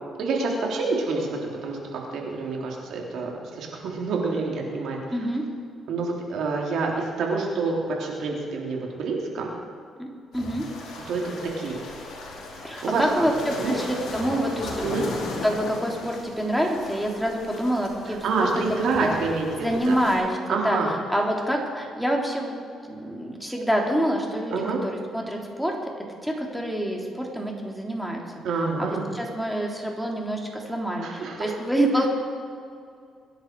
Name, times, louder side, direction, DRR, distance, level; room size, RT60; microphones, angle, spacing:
voice 1, 0.2-5.0 5.9-9.5 11.1-11.8 12.5-13.0 13.6-13.7 14.8-15.1 18.1-20.0 20.5-20.9 24.5-24.8 28.4-29.1 31.0-31.6, right 4 dB, 75° right, -1 dB, 3.5 m, -27 dB
voice 2, 5.1-5.4 10.0-10.1 10.3-10.7 12.6-19.1 19.6-22.5 22.9-24.5 24.8-25.8 26.2-28.2 28.8-32.1, equal, ahead, 0 dB, 3.2 m, -27 dB
sound 1, 10.3-20.2, left 3 dB, 80° left, 4.7 m, -37 dB
24.0 x 10.5 x 4.7 m, 2.3 s
cardioid pair, 90°, 0 cm